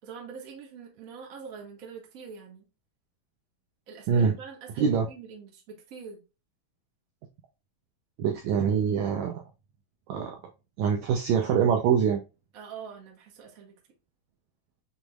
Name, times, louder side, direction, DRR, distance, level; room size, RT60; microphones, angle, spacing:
voice 1, 0.0-2.7 3.9-6.2 12.5-13.8, right 6 dB, 60° right, 0.9 m, -44 dB
voice 2, 8.2-9.4 10.1-10.4 10.8-12.2, right 7 dB, 90° right, 1.6 m, -24 dB
6.8 x 3.1 x 2.3 m
omnidirectional pair, 3.9 m